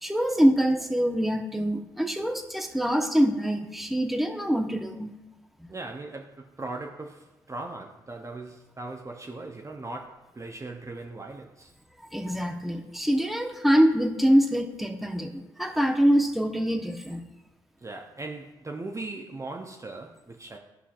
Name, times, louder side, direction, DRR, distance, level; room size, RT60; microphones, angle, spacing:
voice 1, 0.0-5.1 5.6-5.7 12.1-15.3 15.6-17.2, equal, ahead, 1.1 m, -24 dB
voice 2, 5.7-11.7 17.8-20.6, right 2 dB, 25° right, 0.8 m, -39 dB
15.5 x 5.6 x 2.5 m
hypercardioid pair, 45°, 12 cm